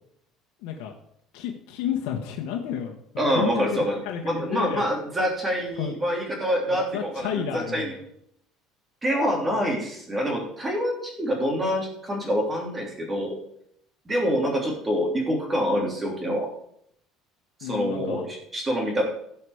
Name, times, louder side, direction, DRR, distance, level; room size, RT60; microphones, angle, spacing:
voice 1, 0.6-0.9 1.3-4.8 5.8-5.9 6.7-7.9 17.6-18.2, left 8 dB, 80° left, 0 dB, 1.3 m, -31 dB
voice 2, 3.2-4.0 4.2-7.9 9.0-13.3 14.1-16.5 17.6-19.0, equal, 15° right, 0 dB, 3.1 m, -26 dB
16.0 x 5.8 x 5.0 m, 0.72 s
cardioid pair, 140°, 0 cm